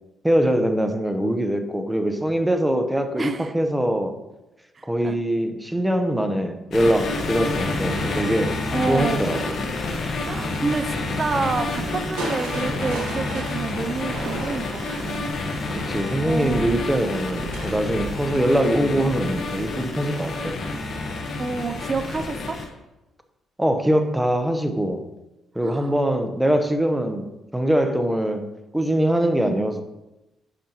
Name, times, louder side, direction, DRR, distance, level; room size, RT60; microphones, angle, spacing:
voice 1, 0.2-4.1 4.8-8.6 8.9-9.6 11.8-12.2 15.7-20.5 23.6-25.1 25.5-28.5 28.7-29.8, right 1 dB, 5° right, 6 dB, 0.9 m, -23 dB
voice 2, 3.2-3.5 4.8-5.1 8.7-9.4 10.2-15.3 16.2-16.9 18.4-19.0 21.4-22.6 25.6-25.9 29.4-29.6, right 4 dB, 35° right, 9 dB, 0.5 m, -29 dB
sound 1, 6.7-22.7, left 3 dB, 60° left, 1.3 m, -29 dB
Crushing, 12.2-20.1 21.7-22.2 22.7-22.8, right 3 dB, 90° right, 1.3 m, -36 dB
10.0 x 5.4 x 3.0 m, 0.98 s
cardioid pair, 90°, 0 cm